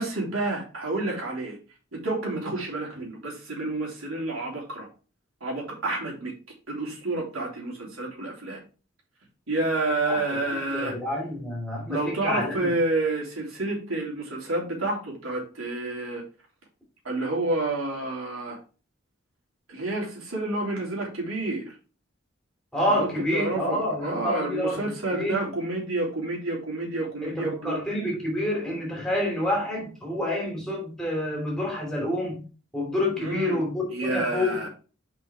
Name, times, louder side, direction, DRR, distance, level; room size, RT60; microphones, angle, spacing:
voice 1, 0.0-1.6 1.9-4.9 5.4-6.3 6.7-8.6 9.5-11.0 11.9-16.2 17.0-18.6 19.7-21.7 22.9-27.8 33.2-33.6 33.9-34.7, right 2 dB, 85° right, 3.3 m, -29 dB
voice 2, 10.7-12.7 22.7-24.8 25.1-25.3 27.2-32.4 32.7-34.6, left 1 dB, 5° left, 3.0 m, -28 dB
7.4 x 5.5 x 3.5 m
head